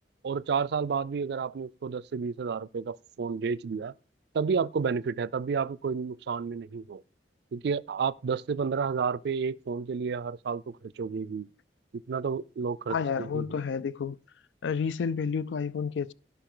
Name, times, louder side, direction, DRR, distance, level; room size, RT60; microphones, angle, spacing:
voice 1, 0.2-3.9 4.3-7.0 7.5-11.5 12.1-13.5, right 5 dB, 65° right, 0.4 m, -31 dB
voice 2, 12.9-14.2 14.6-16.1, left 6 dB, 80° left, 0.4 m, -30 dB
16.0 x 5.7 x 3.8 m
head